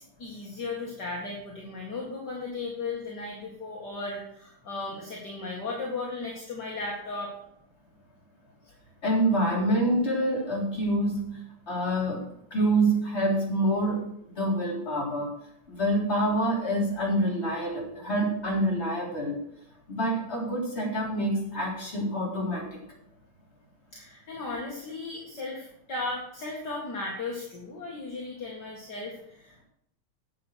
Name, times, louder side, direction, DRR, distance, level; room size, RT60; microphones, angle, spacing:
voice 1, 0.0-7.4 23.9-29.6, left 3 dB, 50° left, -3 dB, 2.6 m, -36 dB
voice 2, 9.0-11.3 11.7-12.2 12.5-14.1 14.4-15.3 15.7-19.4 19.9-22.8, right 1 dB, 30° left, -3 dB, 4.0 m, -26 dB
10.5 x 7.6 x 6.4 m, 0.73 s
omnidirectional pair, 2.4 m